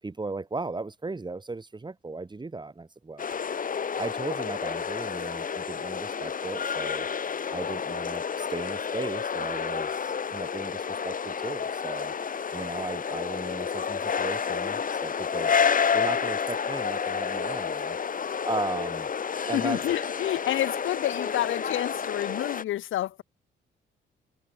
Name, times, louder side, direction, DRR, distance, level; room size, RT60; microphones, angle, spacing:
voice 1, 0.0-3.3 4.0-7.1 7.5-12.1 12.5-18.0 18.5-19.1 19.5-19.8, right 3 dB, 20° right, 6.5 m, -36 dB
sound 1, 3.2-22.6, left 6 dB, 45° left, 3.0 m, -30 dB
voice 2, 19.5-23.2, left 13 dB, 80° left, 5.5 m, -29 dB
cardioid pair, 90°, 20 cm